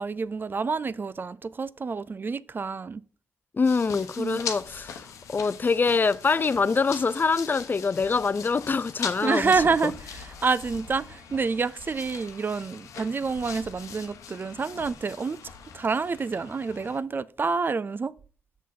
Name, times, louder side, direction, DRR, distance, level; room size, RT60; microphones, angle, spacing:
voice 1, 0.0-3.0 4.2-4.4 9.2-15.4 15.7-18.1, right 4 dB, 40° right, 0.4 m, -28 dB
voice 2, 3.5-9.5, left 4 dB, 35° left, 0.4 m, -25 dB
sound 1, 3.6-17.0, left 7 dB, 85° left, 0.9 m, -41 dB
6.2 x 5.9 x 4.0 m
supercardioid pair, 50°, 5 cm